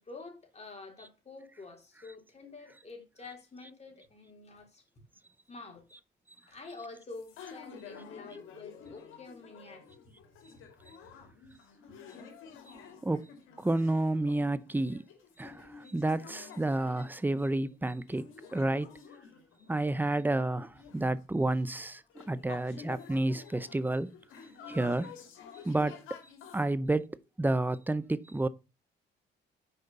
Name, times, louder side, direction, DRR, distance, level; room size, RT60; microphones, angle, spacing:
voice 1, 0.0-4.8 5.5-5.9 6.5-9.9, left 3 dB, 35° left, 3.8 m, -48 dB
sound 1, 7.1-26.7, left 6 dB, 85° left, 2.5 m, -51 dB
voice 2, 13.6-15.0 15.4-18.2 18.5-18.9 19.7-22.0 22.3-24.1 24.7-25.1 25.7-26.2 26.5-28.5, right 2 dB, 10° right, 0.7 m, -30 dB
6.7 x 5.1 x 7.0 m
cardioid pair, 90°, 20 cm